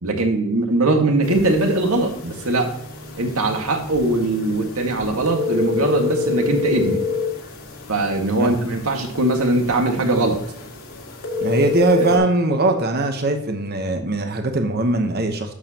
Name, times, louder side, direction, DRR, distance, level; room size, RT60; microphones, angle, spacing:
voice 1, 0.0-2.8 3.2-7.0 7.9-10.4 12.1-12.2, right 2 dB, 75° right, 4 dB, 1.7 m, -20 dB
sound 1, 1.2-12.2, left 5 dB, 75° left, 2.4 m, -29 dB
voice 2, 11.4-15.5, right 2 dB, 45° right, 5 dB, 1.0 m, -20 dB
11.5 x 7.2 x 2.9 m, 0.72 s
head